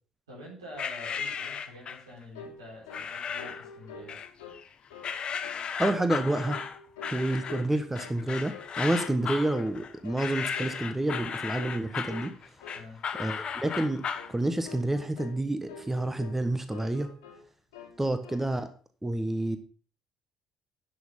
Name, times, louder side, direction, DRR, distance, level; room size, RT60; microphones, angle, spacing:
voice 1, 0.3-4.2 12.7-13.0 18.0-18.2, left 1 dB, 85° right, -3 dB, 4.3 m, -46 dB
sound 1, 0.8-2.1 2.9-3.7 4.1-4.7 5.0-14.3, left 7 dB, 45° left, 1.1 m, -35 dB
sound 2, 2.3-2.6 2.9-3.1 3.4-4.6 4.9-5.1 5.4-5.7 5.9-6.2 6.4-7.2 7.5-8.2 8.5-8.7 9.0-9.2 9.5-9.7 10.0-10.3 10.5-10.8 11.1-11.3 11.6-11.8 12.1-12.3 12.6-12.8 13.1-13.4 13.6-13.9 14.1-14.3 14.6-15.4 15.7-16.4 16.7-17.4 17.7-18.5, left 4 dB, 80° left, 2.4 m, -46 dB
voice 2, 5.8-6.6 7.1-12.3 13.2-17.1 18.0-18.7 19.0-19.6, right 1 dB, 10° right, 9 dB, 1.2 m, -29 dB
11.5 x 6.4 x 5.5 m, 0.39 s
figure-of-eight pair, 50°, 2 cm